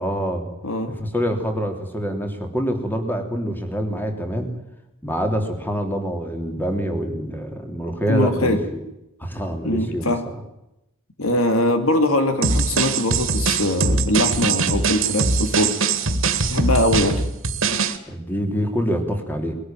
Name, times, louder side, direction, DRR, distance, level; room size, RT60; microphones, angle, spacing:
voice 1, 0.0-0.5 0.8-4.5 5.0-8.8 9.2-10.1 18.1-19.5, equal, 10° left, 5 dB, 3.2 m, -25 dB
voice 2, 0.6-0.9 8.1-8.6 9.6-10.2 11.2-15.7 16.5-17.2, left 1 dB, 70° left, 7 dB, 2.7 m, -21 dB
sound 1, 12.4-18.0, right 4 dB, 60° right, 2.2 m, -22 dB
21.5 x 17.5 x 9.1 m, 0.89 s
head